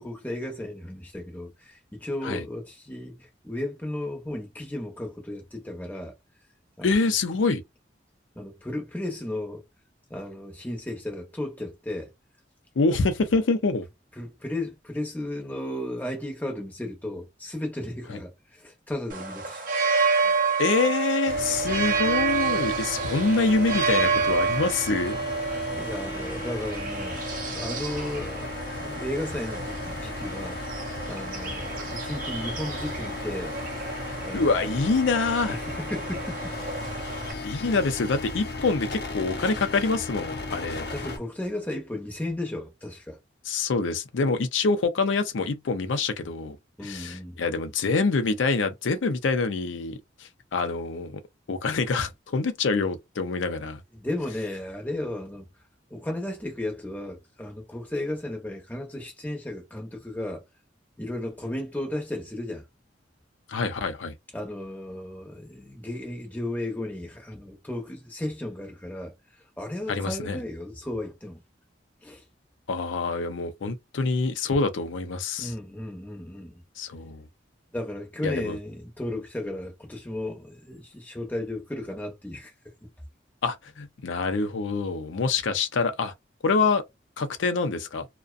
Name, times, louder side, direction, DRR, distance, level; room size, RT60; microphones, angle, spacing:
voice 1, 0.0-6.1 6.8-7.1 8.4-9.6 10.1-12.1 14.2-19.7 25.7-27.2 27.5-28.5 28.8-30.6 31.1-33.6 34.1-34.8 35.5-36.6 40.7-43.2 46.8-47.4 53.9-55.5 55.9-60.4 61.0-62.6 64.3-69.1 69.6-71.4 72.0-72.2 75.4-76.6 77.7-82.9, left 1 dB, 10° left, 0.7 m, -34 dB
voice 2, 6.8-7.6 12.8-13.9 20.1-25.2 34.1-35.6 37.4-40.9 43.5-46.6 46.8-51.2 51.5-53.8 63.5-64.1 69.9-70.4 72.7-75.5 76.8-77.2 78.2-78.6 83.4-86.1 86.4-86.8 87.2-88.1, left 4 dB, 90° left, 0.5 m, -26 dB
sound 1, 19.1-37.3, right 4 dB, 45° right, 0.6 m, -29 dB
sound 2, 21.3-41.2, left 2 dB, 55° left, 0.7 m, -36 dB
2.5 x 2.2 x 2.3 m
head